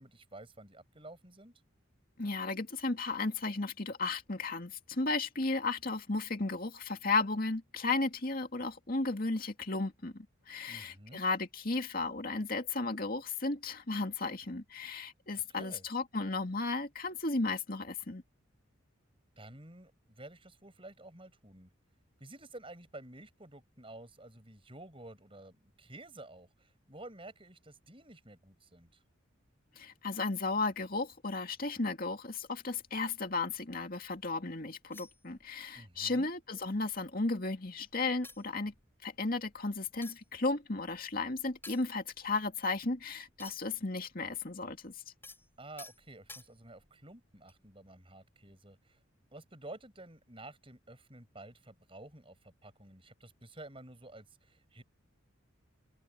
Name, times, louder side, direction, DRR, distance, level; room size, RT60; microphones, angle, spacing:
voice 1, 0.0-1.5 10.7-11.2 15.3-15.9 19.4-21.7 22.2-29.0 35.7-36.3 45.6-49.0 49.3-54.8, right 2 dB, 25° right, 7.6 m, -51 dB
voice 2, 2.2-18.2 29.8-38.7 39.0-44.9, left 3 dB, 45° left, 2.3 m, -34 dB
sound 1, 32.4-34.2 34.9-35.8 36.1-36.3 36.6-37.5 37.9-38.0 38.2-43.9 44.1-46.9 47.5-47.7, left 3 dB, 10° left, 7.8 m, -54 dB
open air
head